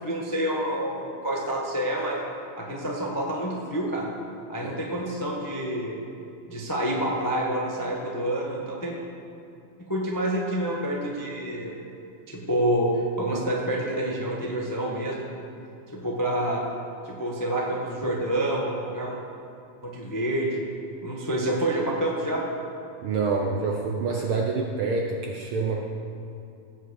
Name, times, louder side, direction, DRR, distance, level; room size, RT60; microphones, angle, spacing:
voice 1, 0.0-2.2 2.6-4.1 4.5-6.0 6.5-8.9 9.9-11.7 12.3-15.4 15.9-16.6 17.0-19.2 19.8-20.6 21.0-22.4, right 1 dB, 20° left, -2 dB, 0.4 m, -28 dB
voice 2, 23.0-25.8, right 4 dB, 70° right, 0 dB, 1.3 m, -27 dB
17.0 x 6.2 x 8.2 m, 2.6 s
omnidirectional pair, 3.4 m